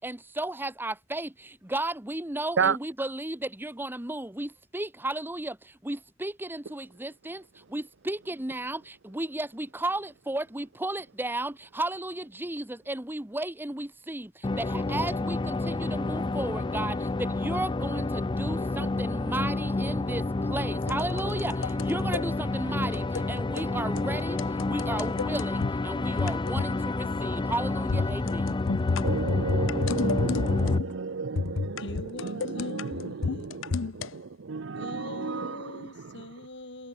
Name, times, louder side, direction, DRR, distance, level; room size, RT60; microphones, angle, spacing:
voice 1, 0.0-28.6, right 1 dB, 10° right, 1.0 m, -34 dB
sound 1, 14.4-30.8, left 2 dB, 25° left, 0.5 m, -30 dB
sound 2, 20.8-22.2 22.9-23.3 23.5-23.7 24.0-24.1 24.4-25.7 26.2-26.8 27.0-27.3 27.9-31.0 31.4-34.1, left 4 dB, 90° left, 0.6 m, -30 dB
voice 2, 29.0-31.8 32.2-36.2, right 5 dB, 70° right, 0.6 m, -32 dB
voice 3, 31.8-33.7 34.7-36.9, left 2 dB, 65° left, 5.2 m, -42 dB
head